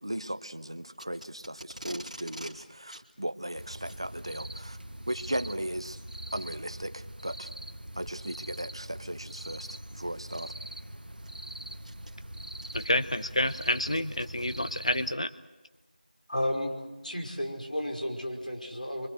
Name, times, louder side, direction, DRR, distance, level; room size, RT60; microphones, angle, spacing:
voice 1, 0.0-4.8 5.1-6.0 6.3-7.5 7.9-10.5, right 1 dB, 35° right, 12 dB, 0.7 m, -37 dB
Packing tape duct tape, 1.0-2.5 2.9-3.1 3.8-4.0 5.2-5.4 6.1-6.2 6.9-7.0 8.5-8.8 9.9-10.0 10.3-10.4 10.9-14.8, equal, 50° right, 2.6 m, -47 dB
sound 1, 3.6-15.1, right 1 dB, 75° right, 0.9 m, -42 dB
voice 2, 12.7-15.3, left 1 dB, 40° left, 12 dB, 0.8 m, -29 dB
voice 3, 16.3-19.1, left 1 dB, 65° left, 1 dB, 5.3 m, -33 dB
25.5 x 25.0 x 6.5 m, 1.1 s
figure-of-eight pair, 175°, 5 cm